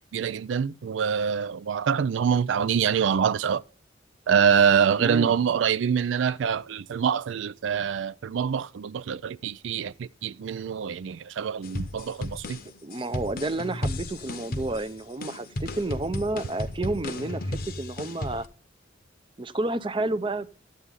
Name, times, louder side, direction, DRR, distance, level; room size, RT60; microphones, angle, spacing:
voice 1, 0.1-3.6 4.3-12.6, right 7 dB, 80° right, 0.4 m, -25 dB
voice 2, 5.0-5.3 12.8-18.5 19.4-20.6, right 2 dB, 25° right, 0.6 m, -30 dB
sound 1, 11.6-18.5, left 1 dB, 50° left, 0.9 m, -34 dB
13.0 x 8.2 x 3.7 m
head